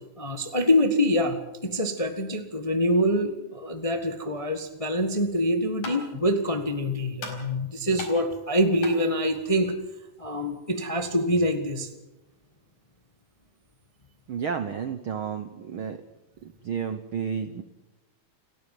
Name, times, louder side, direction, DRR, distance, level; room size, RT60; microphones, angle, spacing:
voice 1, 0.2-9.7 10.2-11.9, equal, 20° left, 6 dB, 0.8 m, -25 dB
sound 1, 5.3-10.6, left 3 dB, 75° left, 6.2 m, -43 dB
voice 2, 14.3-16.0 16.4-17.6, right 7 dB, 70° right, 9 dB, 1.3 m, -31 dB
30.0 x 11.5 x 9.5 m, 1.0 s
omnidirectional pair, 3.6 m